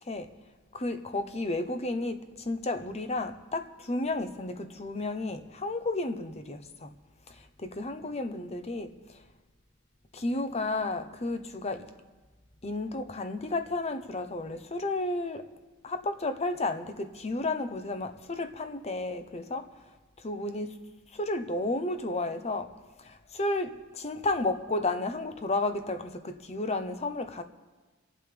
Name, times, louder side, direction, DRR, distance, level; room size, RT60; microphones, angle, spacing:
voice 1, 0.7-6.9 7.6-9.0 10.1-11.9 12.6-15.5 15.8-19.7 20.2-20.9 21.1-22.7 23.0-27.4, left 2 dB, 30° left, 0.9 m, -32 dB
28.5 x 11.5 x 3.4 m
head